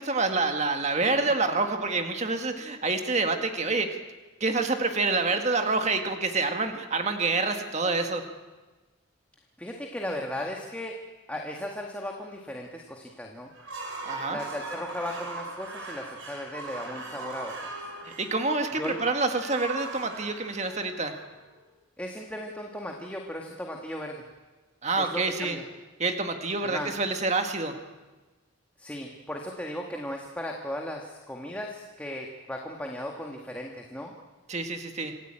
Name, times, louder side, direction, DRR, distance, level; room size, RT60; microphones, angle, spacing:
voice 1, 0.0-3.9 4.4-8.2 14.0-14.4 18.2-21.1 24.8-25.6 26.0-27.7 34.5-35.1, right 3 dB, 35° right, 5 dB, 1.8 m, -27 dB
voice 2, 9.6-10.9 11.3-13.5 14.3-17.9 18.8-19.0 22.0-24.2 25.0-25.6 26.6-26.9 28.8-34.1, left 1 dB, 5° left, 0 dB, 1.9 m, -36 dB
sound 1, 13.5-21.6, right 3 dB, 70° right, 5.8 m, -40 dB
27.0 x 15.5 x 9.0 m, 1.2 s
head